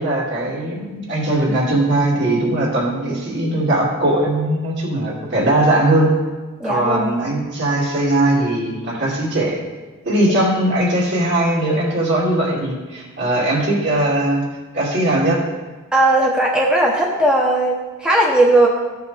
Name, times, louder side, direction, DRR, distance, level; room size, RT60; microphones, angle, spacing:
voice 1, 0.0-6.1 6.6-9.6 10.1-14.4 14.7-15.5, right 1 dB, 55° right, -4 dB, 2.6 m, -19 dB
voice 2, 6.6-7.1 15.9-18.7, right 1 dB, 5° right, -2 dB, 0.9 m, -17 dB
15.0 x 6.7 x 3.4 m, 1.3 s
head